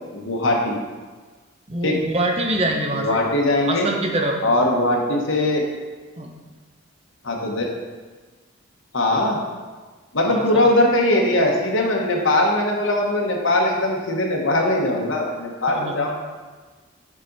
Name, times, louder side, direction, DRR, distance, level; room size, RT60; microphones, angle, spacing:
voice 1, 0.1-0.8 1.8-2.0 2.9-3.9 4.4-5.6 7.2-7.7 8.9-9.4 10.1-16.1, left 1 dB, 70° left, 0 dB, 1.2 m, -20 dB
voice 2, 1.7-3.2 3.7-4.4 6.2-6.3 10.3-10.7 15.7-15.9, right 1 dB, 30° right, 2 dB, 0.8 m, -24 dB
7.3 x 5.0 x 4.1 m, 1.3 s
head